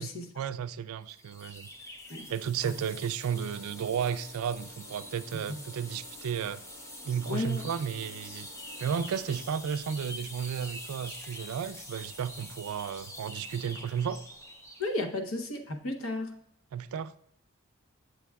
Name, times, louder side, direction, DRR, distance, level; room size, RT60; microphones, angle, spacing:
voice 1, 0.4-1.7 2.3-6.6 7.0-8.5 8.8-14.2 16.7-17.1, right 7 dB, 75° right, 0.3 m, -33 dB
sound 1, 1.1-14.9, left 1 dB, 15° left, 0.5 m, -45 dB
sound 2, 3.2-9.4, left 1 dB, 50° left, 1.7 m, -54 dB
voice 2, 7.3-7.6 14.8-16.3, left 2 dB, 65° left, 0.8 m, -33 dB
8.3 x 6.8 x 2.3 m
head